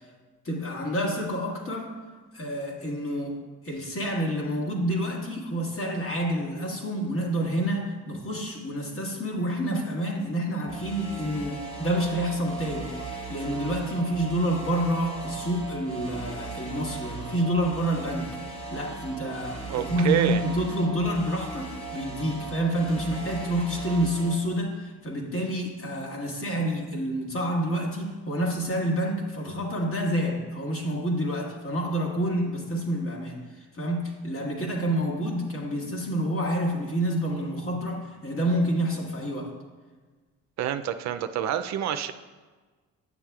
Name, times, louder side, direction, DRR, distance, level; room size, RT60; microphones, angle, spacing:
voice 1, 0.4-1.9 2.3-18.3 18.7-33.4 33.7-39.5, equal, 45° left, -1 dB, 1.7 m, -28 dB
sound 1, 10.7-24.4, right 3 dB, 20° left, 1.2 m, -38 dB
voice 2, 19.7-20.4 40.6-42.1, right 11 dB, 65° right, 9 dB, 0.4 m, -27 dB
9.7 x 7.3 x 2.3 m, 1.3 s
cardioid pair, 90°, 30 cm